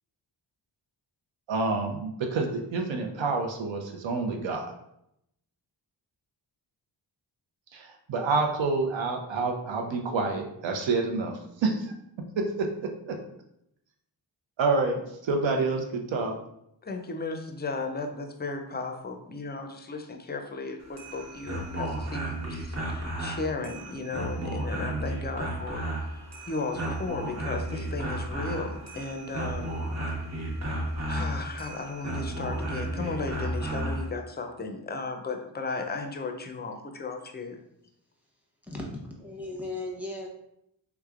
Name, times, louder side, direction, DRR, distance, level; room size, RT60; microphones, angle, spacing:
voice 1, 1.5-4.8 7.7-11.9 12.4-12.7 13.1-13.2 14.6-16.3, right 3 dB, 75° right, 3 dB, 0.7 m, -28 dB
voice 2, 16.8-25.8 26.5-29.7 31.1-37.6, left 3 dB, 25° left, 4 dB, 0.4 m, -35 dB
sound 1, 20.8-34.1, right 1 dB, 35° right, 0.8 m, -33 dB
voice 3, 38.6-40.3, left 2 dB, 5° right, -2 dB, 0.9 m, -36 dB
3.4 x 3.1 x 2.4 m, 0.77 s
wide cardioid pair, 85°, 46 cm